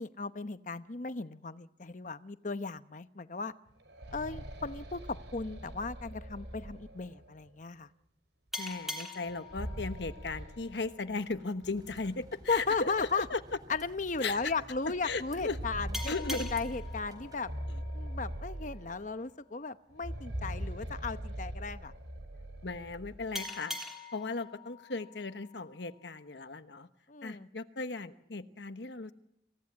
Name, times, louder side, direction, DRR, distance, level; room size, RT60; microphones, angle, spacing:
voice 1, 0.0-3.5 4.1-7.9 12.5-13.3 13.7-17.5 17.9-21.9 27.1-27.5, left 4 dB, 45° left, 11 dB, 0.9 m, -36 dB
sound 1, 3.7-7.5 9.2-11.4 11.7-11.8 12.7-12.8 13.3-13.4 15.1-19.2 19.9-23.3, equal, 80° right, 5.7 m, -42 dB
sound 2, 8.5-11.8 15.9-19.2 23.3-26.3, left 2 dB, ahead, 3.1 m, -44 dB
voice 2, 8.6-13.4 14.2-14.5 15.0-15.6 16.1-16.5 22.6-23.8 24.1-26.9 27.2-29.1, left 3 dB, 70° left, 9 dB, 1.2 m, -37 dB
sound 3, 11.6-17.5, equal, 20° right, 4.8 m, -53 dB
27.0 x 17.0 x 9.6 m, 0.81 s
head